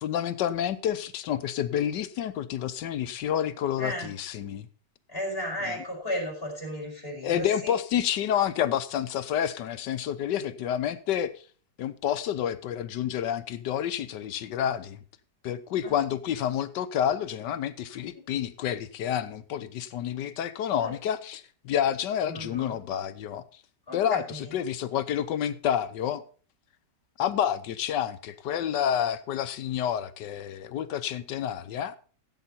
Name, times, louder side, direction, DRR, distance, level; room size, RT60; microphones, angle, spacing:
voice 1, 0.0-4.7 5.6-5.7 7.2-11.4 11.8-15.0 15.4-23.4 23.9-26.2 27.2-32.0, left 10 dB, 80° left, 1.4 m, -29 dB
voice 2, 3.8-4.1 5.1-7.7 15.8-15.9 18.1-18.2 20.8-20.9 22.3-22.8 23.9-24.5, left 1 dB, 30° left, 5.0 m, -34 dB
15.0 x 8.1 x 4.2 m
omnidirectional pair, 1.9 m